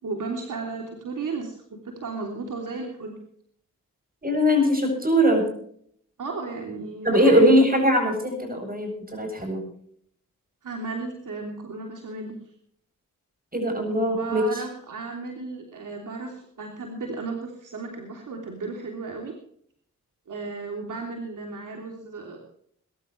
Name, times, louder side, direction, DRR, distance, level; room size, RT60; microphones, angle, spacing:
voice 1, 0.0-3.2 6.2-7.5 10.6-12.4 13.9-19.3 20.3-22.4, right 3 dB, 70° right, 2 dB, 3.2 m, -34 dB
voice 2, 4.2-5.5 7.0-9.6 13.5-14.6, equal, 25° right, 5 dB, 8.0 m, -21 dB
22.0 x 13.5 x 3.3 m, 0.63 s
cardioid pair, 55°, 32 cm